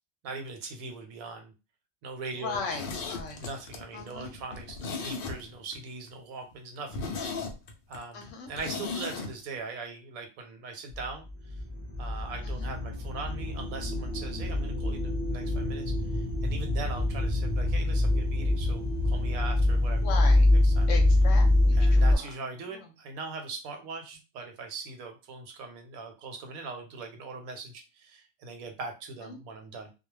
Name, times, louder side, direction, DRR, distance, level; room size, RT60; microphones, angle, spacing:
voice 1, 0.2-1.5 2.0-2.8 3.4-7.1 7.9-11.5 12.0-20.0 20.6-20.9 21.7-29.9, right 3 dB, 80° right, 5 dB, 1.0 m, -41 dB
voice 2, 2.4-3.4 3.9-4.3 8.1-8.9 12.4-12.7 20.0-20.5 20.9-22.3 22.7-22.9 29.2-29.4, left 5 dB, 70° left, 3 dB, 0.9 m, -38 dB
Zipper (clothing), 2.5-5.8 6.1-6.2 6.5-6.6 6.9-9.3 9.6-9.7, left 4 dB, 85° left, 0.5 m, -37 dB
sound 1, 10.9-22.2, left 1 dB, 30° right, 0.5 m, -25 dB
2.3 x 2.1 x 3.1 m, 0.30 s
omnidirectional pair, 1.5 m